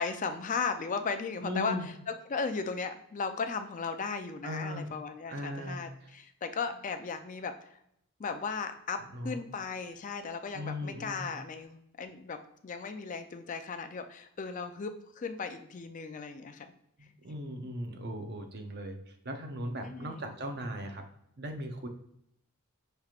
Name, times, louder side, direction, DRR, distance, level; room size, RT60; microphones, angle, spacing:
voice 1, 0.0-7.8 8.2-9.0 9.2-12.4 12.6-14.9 15.2-16.7 19.8-20.3, left 5 dB, 35° left, 8 dB, 0.4 m, -36 dB
voice 2, 1.4-1.9 4.4-4.9 5.3-5.8 9.1-9.4 10.5-11.3 17.0-21.0 21.4-21.9, equal, 45° right, 5 dB, 0.6 m, -38 dB
5.8 x 3.3 x 2.4 m, 0.73 s
head